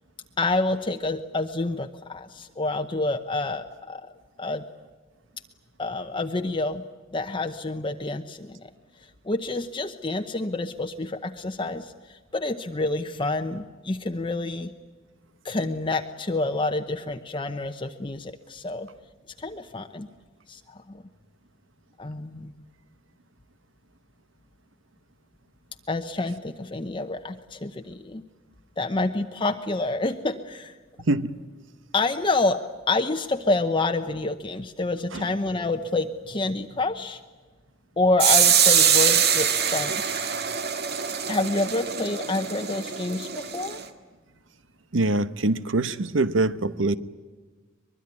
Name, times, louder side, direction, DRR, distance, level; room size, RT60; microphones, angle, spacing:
voice 1, 0.4-4.1 4.4-4.6 5.8-6.8 7.1-8.7 9.0-14.7 15.4-18.9 19.4-20.1 20.5-21.0 22.0-22.5 25.9-28.2 28.8-30.8 31.9-32.6 32.9-37.2 38.0-40.3 41.2-43.8, left 2 dB, 25° left, 0.9 m, -28 dB
voice 2, 31.0-31.4 35.1-35.3 44.9-47.0, right 2 dB, 75° right, 1.0 m, -24 dB
sound 1, 38.2-43.8, right 8 dB, 55° right, 1.8 m, -23 dB
23.5 x 22.0 x 9.8 m
head